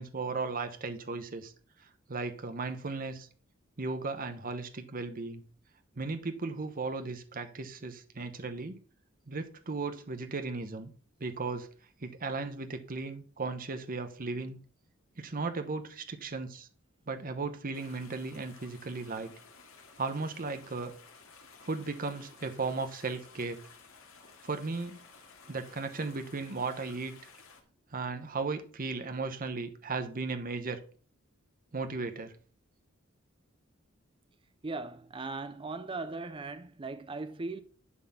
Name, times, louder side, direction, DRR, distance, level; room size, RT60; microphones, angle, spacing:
voice 1, 0.0-1.5 2.1-3.3 3.8-5.4 6.0-8.8 9.3-10.9 11.2-11.7 12.0-14.6 15.2-16.7 17.1-19.3 20.0-20.9 21.6-23.6 24.4-25.0 25.5-27.1 27.9-30.8 31.7-32.3, right 3 dB, 45° right, 0.9 m, -36 dB
sound 1, 17.7-27.6, left 4 dB, 80° left, 2.3 m, -55 dB
voice 2, 34.6-37.6, right 3 dB, 25° right, 0.5 m, -38 dB
11.0 x 4.2 x 5.7 m
head